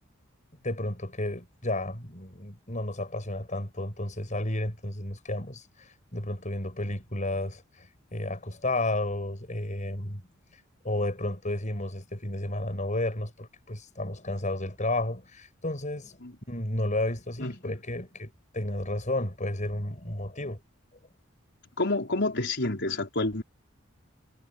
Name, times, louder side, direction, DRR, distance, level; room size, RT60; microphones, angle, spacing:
voice 1, 0.6-10.2 10.8-16.2 16.5-20.6, left 1 dB, 40° left, 7.5 m, -32 dB
voice 2, 21.8-23.4, left 2 dB, 60° left, 4.8 m, -28 dB
head